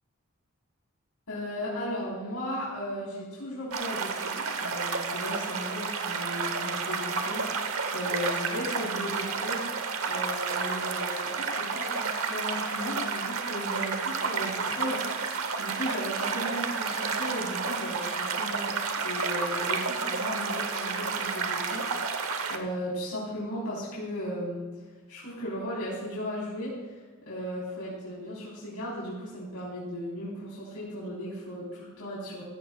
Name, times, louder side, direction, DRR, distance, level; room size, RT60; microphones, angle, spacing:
voice 1, 1.3-9.7 10.0-15.2 15.6-24.7 25.1-26.7 27.2-32.4, equal, 85° left, -7 dB, 4.2 m, -36 dB
sound 1, 3.7-22.6, right 5 dB, 70° right, 1.0 m, -31 dB
15.5 x 14.5 x 2.4 m, 1.4 s
head